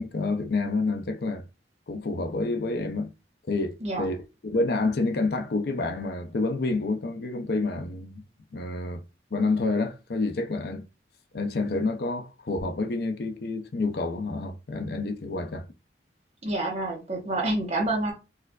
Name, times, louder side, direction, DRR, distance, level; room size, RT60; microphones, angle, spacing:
voice 1, 0.0-1.4 1.9-3.1 3.5-4.2 4.4-8.2 8.5-9.0 9.3-10.8 11.3-15.7, left 3 dB, 55° left, 0.5 m, -28 dB
voice 2, 16.4-18.1, right 2 dB, 35° right, 1.0 m, -28 dB
4.3 x 2.5 x 2.2 m
head